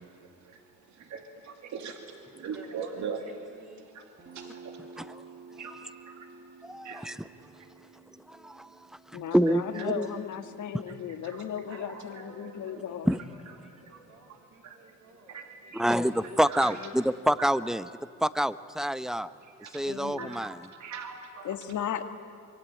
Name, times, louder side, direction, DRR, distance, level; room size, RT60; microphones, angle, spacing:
voice 1, 0.0-3.2 3.9-5.1 5.6-6.4 6.7-7.7 9.7-9.9 10.9-11.0 11.2-11.4 12.8-12.9 13.9-14.0 14.3-15.0 15.3-15.4 15.7-16.0 16.5-16.8 17.4-17.5 19.4-19.8 20.2-21.5, right 6 dB, 70° right, 5 dB, 2.4 m, -42 dB
voice 2, 2.3-3.9 11.7-16.4, right 3 dB, 55° right, -2 dB, 3.6 m, -51 dB
Guitar, 4.2-11.9, right 4 dB, 35° right, 2.2 m, -52 dB
voice 3, 6.6-7.3 8.3-8.7 9.1-10.1 13.1-13.2 15.7-17.9 18.2-19.3 19.7-20.6, equal, ahead, 14 dB, 0.8 m, -27 dB
voice 4, 9.1-13.1 16.8-16.9 19.9-20.3 21.4-22.0, left 9 dB, 75° left, 8 dB, 1.8 m, -36 dB
26.0 x 23.5 x 8.9 m, 2.5 s
cardioid pair, 90°, 30 cm